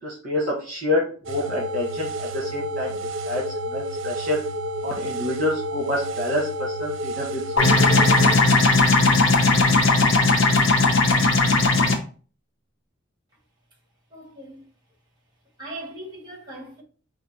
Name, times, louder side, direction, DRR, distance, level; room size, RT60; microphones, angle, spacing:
voice 1, 0.0-2.9 3.2-3.4 3.7-4.4 4.8-7.9, left 1 dB, 40° right, 1.2 m, -27 dB
sound 1, 1.3-8.4, equal, 65° right, 0.6 m, -30 dB
sound 2, 7.6-11.9, left 3 dB, 70° left, 0.9 m, -17 dB
voice 2, 14.1-14.7 15.6-16.8, right 1 dB, 20° right, 1.8 m, -39 dB
4.9 x 2.6 x 4.2 m
head